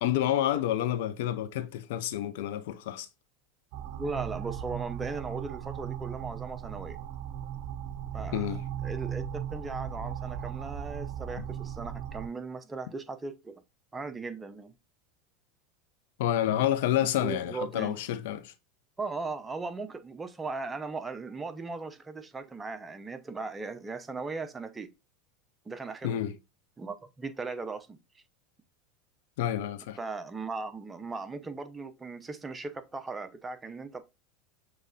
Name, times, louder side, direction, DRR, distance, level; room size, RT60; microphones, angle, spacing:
voice 1, 0.0-3.1 8.3-8.6 11.4-11.5 16.2-18.5 26.0-26.3 29.4-30.0, left 12 dB, 75° left, 0.5 m, -29 dB
sound 1, 3.7-12.3, right 9 dB, 60° right, 0.5 m, -37 dB
voice 2, 4.0-7.0 8.1-13.6 13.9-14.7 17.2-18.0 19.0-24.9 25.7-26.2 26.8-28.0 30.0-34.0, right 4 dB, 15° right, 0.7 m, -38 dB
6.6 x 3.2 x 2.5 m
supercardioid pair, 105°, 0 cm